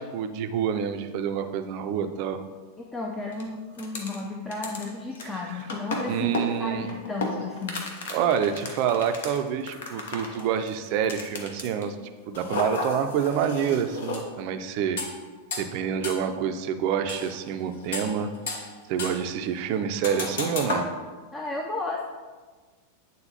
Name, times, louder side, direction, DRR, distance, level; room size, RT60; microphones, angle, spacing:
voice 1, 0.0-2.4 5.5-5.6 6.1-7.0 8.1-12.0 12.3-15.0 15.6-18.3 18.9-20.9, right 8 dB, 45° right, 8 dB, 0.5 m, -27 dB
voice 2, 2.8-7.8 21.3-22.1, left 3 dB, 15° left, 0 dB, 0.5 m, -33 dB
sound 1, 3.3-3.4 3.8-4.2 4.5-11.9 12.3-14.2 15.0-15.1 15.5-15.7 16.0-16.1 17.1-17.4 17.8-18.7 19.0-19.3 20.0-20.9, left 3 dB, 60° left, 0.9 m, -33 dB
8.7 x 3.8 x 2.8 m, 1.4 s
figure-of-eight pair, 90°, 0 cm